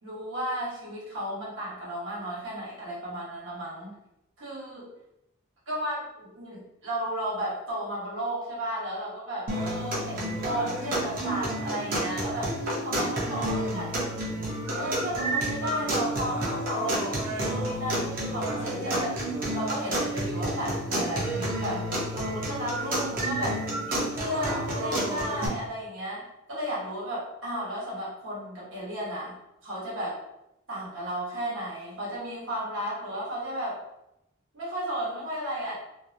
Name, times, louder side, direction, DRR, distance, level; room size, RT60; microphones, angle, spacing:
voice 1, 0.0-3.9 4.4-4.9 5.7-12.6 12.8-21.8 22.1-29.4 29.6-30.2 30.7-33.8 34.5-35.7, equal, 70° right, -6 dB, 1.0 m, -34 dB
sound 1, 9.5-25.5, right 1 dB, 45° right, 0.6 m, -30 dB
2.4 x 2.0 x 2.6 m, 0.84 s
head